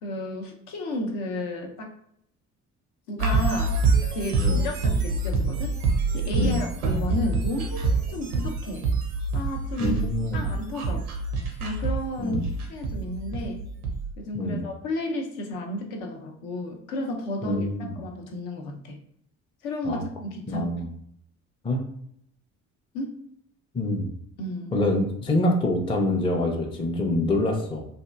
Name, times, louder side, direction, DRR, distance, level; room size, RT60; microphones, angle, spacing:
voice 1, 0.0-1.9 3.1-3.8 4.1-5.7 6.1-8.9 9.3-10.0 10.3-11.0 11.6-12.4 12.7-13.6 14.2-17.7 18.0-19.0 19.6-20.7 22.9-23.2 24.4-24.7, left 1 dB, 60° left, 2 dB, 0.7 m, -32 dB
sound 1, 3.2-14.1, right 3 dB, 85° right, 0.5 m, -26 dB
voice 2, 9.8-10.5 12.2-12.4 14.3-14.6 17.4-17.9 19.9-20.0 20.5-20.9 21.6-21.8 23.7-24.1 24.7-27.9, left 1 dB, 15° left, 2 dB, 0.4 m, -26 dB
2.7 x 2.5 x 2.3 m, 0.72 s
figure-of-eight pair, 50°, 43 cm